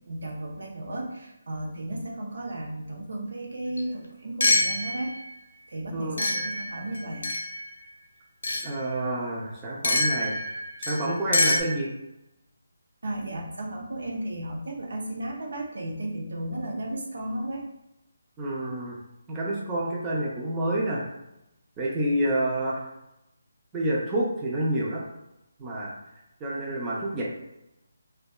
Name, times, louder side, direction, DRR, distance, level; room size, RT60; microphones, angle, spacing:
voice 1, 0.1-5.1 5.7-7.3 13.0-17.7, right 1 dB, 70° right, -1 dB, 0.6 m, -34 dB
sound 1, 3.8-3.9 4.4-5.3 6.2-7.7 8.4-8.7 9.8-11.6, left 2 dB, 70° left, 0.5 m, -26 dB
voice 2, 8.6-10.3 10.8-11.9 18.4-19.0 19.3-21.0 21.8-22.9 23.7-25.0 25.6-25.9 26.4-27.2, right 1 dB, 15° right, -5 dB, 0.5 m, -28 dB
2.6 x 2.2 x 2.2 m, 0.89 s
figure-of-eight pair, 155°, 0 cm